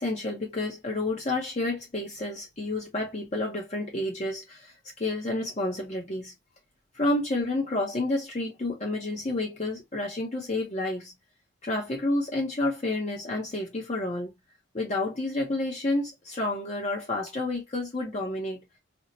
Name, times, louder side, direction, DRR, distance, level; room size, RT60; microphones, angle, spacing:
voice 1, 0.0-6.3 6.9-11.1 11.6-14.3 14.7-18.6, left 2 dB, 35° left, 0.6 m, -30 dB
4.3 x 2.1 x 2.5 m
head